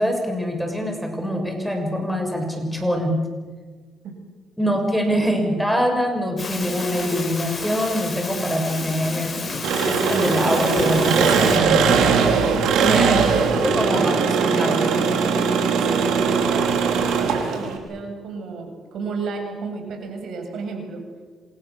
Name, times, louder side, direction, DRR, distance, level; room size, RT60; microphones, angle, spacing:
voice 1, 0.0-3.3 4.6-9.4 9.9-12.0 12.8-13.2 13.6-15.0, equal, ahead, 3 dB, 6.5 m, -24 dB
sound 1, 6.4-11.6, left 3 dB, 35° left, 7.5 m, -31 dB
Engine, 9.6-17.8, right 6 dB, 85° right, 5.0 m, -20 dB
voice 2, 11.6-12.3 12.9-13.5 14.0-15.3 15.7-21.0, right 4 dB, 70° right, 3 dB, 7.8 m, -32 dB
28.0 x 27.0 x 7.4 m, 1.4 s
cardioid pair, 90°, 0 cm